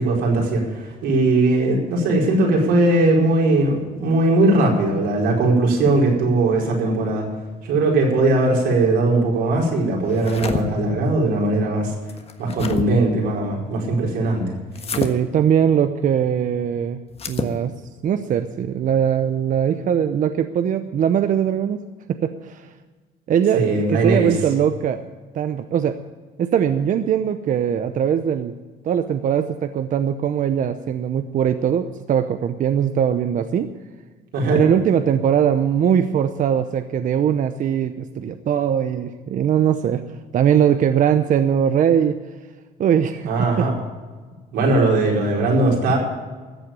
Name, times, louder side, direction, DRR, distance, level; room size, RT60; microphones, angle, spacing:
voice 1, 0.0-7.3 7.6-11.9 12.4-14.5 23.5-24.3 34.3-34.6 43.3-43.7 44.5-46.0, right 2 dB, 85° right, -1 dB, 4.7 m, -19 dB
sound 1, 10.1-10.6 12.1-12.9 14.7-15.1 17.1-17.5, left 5 dB, 35° left, 1.4 m, -27 dB
voice 2, 14.9-17.0 17.3-17.7 18.0-21.8 22.1-22.7 23.3-23.6 23.9-25.0 25.3-26.0 26.4-28.5 28.8-33.7 34.5-40.0 40.3-42.2 42.8-43.7, right 8 dB, 50° right, 9 dB, 0.8 m, -20 dB
14.5 x 8.0 x 8.8 m, 1.4 s
cardioid pair, 110°, 17 cm